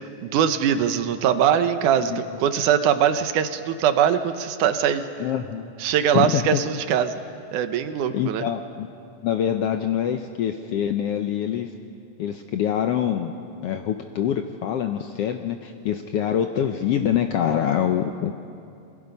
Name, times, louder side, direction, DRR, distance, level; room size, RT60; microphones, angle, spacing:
voice 1, 0.2-5.1 5.8-7.2 7.5-8.5, right 9 dB, 80° right, 9 dB, 2.4 m, -22 dB
voice 2, 5.2-5.7 6.1-6.6 8.1-8.9 9.2-11.7 12.2-13.3 13.6-18.4, left 9 dB, 75° left, 6 dB, 1.4 m, -25 dB
28.0 x 22.5 x 5.4 m, 2.5 s
omnidirectional pair, 3.5 m